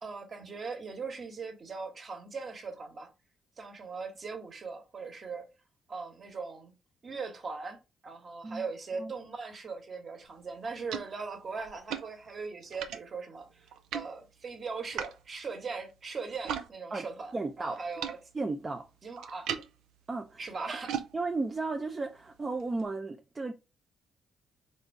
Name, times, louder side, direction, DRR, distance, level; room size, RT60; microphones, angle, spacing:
voice 1, 0.0-3.1 3.6-5.5 5.9-6.7 7.0-7.8 8.0-18.2 19.0-19.5 20.4-21.0, right 4 dB, 45° right, 1.5 m, -40 dB
sound 1, 10.2-16.7 17.0-22.9, right 8 dB, 85° right, 0.6 m, -42 dB
voice 2, 17.3-17.8 18.3-18.9 20.1-20.8 21.1-23.5, right 3 dB, 25° right, 0.6 m, -34 dB
4.2 x 2.7 x 4.6 m
cardioid pair, 90°, 0 cm